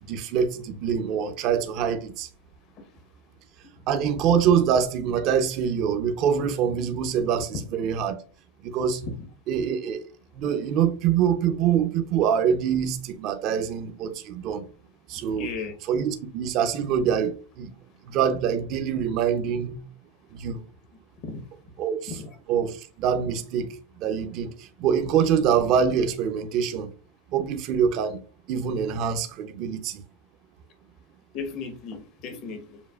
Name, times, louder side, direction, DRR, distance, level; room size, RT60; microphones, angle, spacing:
voice 1, 0.0-2.3 3.9-8.2 8.6-9.0 9.5-10.1 10.3-14.6 15.1-15.5 15.9-17.7 18.0-19.8 20.3-20.6 21.8-22.1 22.5-26.9 27.3-28.2 28.5-30.0, right 8 dB, 50° right, 0.7 m, -25 dB
voice 2, 15.4-15.8 21.2-21.4 22.1-22.3 31.3-32.8, left 5 dB, 50° left, 1.0 m, -36 dB
7.0 x 2.4 x 2.3 m
hypercardioid pair, 110°, 0 cm